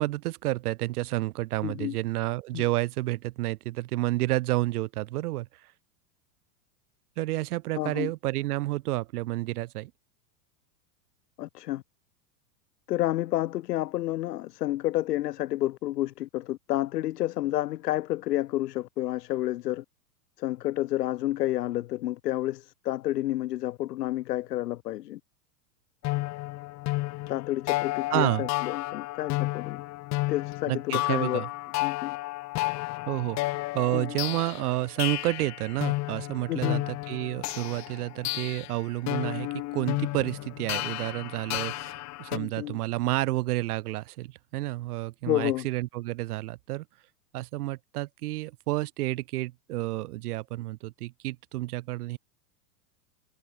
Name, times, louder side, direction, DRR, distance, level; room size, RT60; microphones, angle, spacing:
voice 1, 0.0-5.5 7.2-9.9 28.1-28.5 30.7-31.5 33.1-46.8 47.3-52.2, right 17 dB, 70° right, 1.6 m, -30 dB
voice 2, 1.6-1.9 2.5-2.6 7.8-8.1 11.4-11.8 12.9-19.8 20.4-25.2 27.3-29.8 30.3-31.5 31.8-32.2 33.9-34.2 36.5-36.8 42.3-42.8 45.3-45.6, left 15 dB, 80° left, 1.3 m, -30 dB
sound 1, 26.0-42.4, left 20 dB, 35° left, 1.2 m, -32 dB
hypercardioid pair, 125°, 47 cm